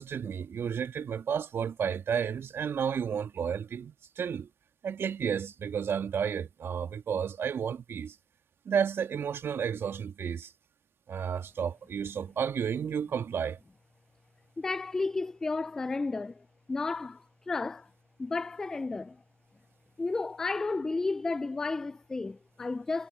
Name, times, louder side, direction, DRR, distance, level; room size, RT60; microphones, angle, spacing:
voice 1, 0.0-4.5 4.8-8.2 8.7-10.5 11.1-13.6, right 7 dB, 15° right, 1.8 m, -32 dB
voice 2, 14.6-17.9 18.2-19.2 20.0-23.1, left 3 dB, 5° left, 0.3 m, -32 dB
hypercardioid pair, 130°, 16 cm